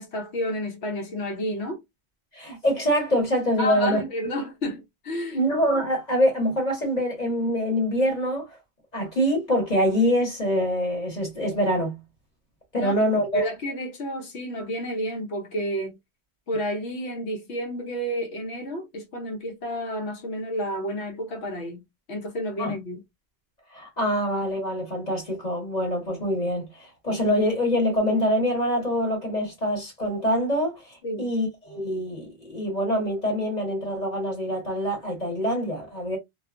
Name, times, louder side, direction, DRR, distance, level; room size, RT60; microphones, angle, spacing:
voice 1, 0.0-1.8 3.6-5.4 12.8-16.0 16.5-21.8 22.1-23.0 31.0-31.3, equal, 90° left, 1.1 m, -30 dB
voice 2, 2.3-4.0 5.3-8.4 8.9-12.0 12.7-13.5 22.6-22.8 23.7-36.2, equal, 40° left, 1.2 m, -25 dB
2.5 x 2.3 x 2.4 m
omnidirectional pair, 1.1 m